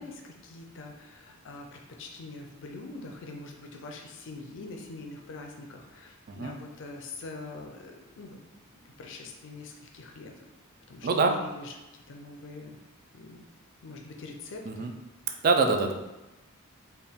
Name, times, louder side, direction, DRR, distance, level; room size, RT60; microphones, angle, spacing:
voice 1, 0.0-8.4 9.0-10.3 10.9-12.8 13.1-13.4 13.8-14.9, left 3 dB, 60° left, 2 dB, 0.5 m, -44 dB
voice 2, 11.0-11.3 14.7-14.9 15.4-15.9, right 4 dB, 45° right, 5 dB, 0.4 m, -24 dB
4.2 x 2.3 x 3.5 m, 1.0 s
head